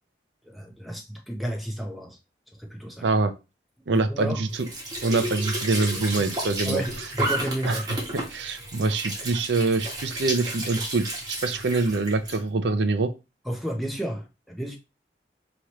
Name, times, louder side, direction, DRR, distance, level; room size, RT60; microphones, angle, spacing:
voice 1, 0.4-2.2 2.6-3.1 3.9-4.4 6.6-7.9 13.4-14.8, right 1 dB, ahead, 0.8 m, -32 dB
voice 2, 3.0-3.3 3.9-4.7 5.0-6.8 7.7-7.8 8.1-11.1 11.4-13.1, right 3 dB, 80° right, 0.6 m, -25 dB
Squeak / Sink (filling or washing) / Trickle dribble, 4.5-12.4, right 1 dB, 20° right, 1.4 m, -32 dB
4.9 x 3.0 x 3.1 m
head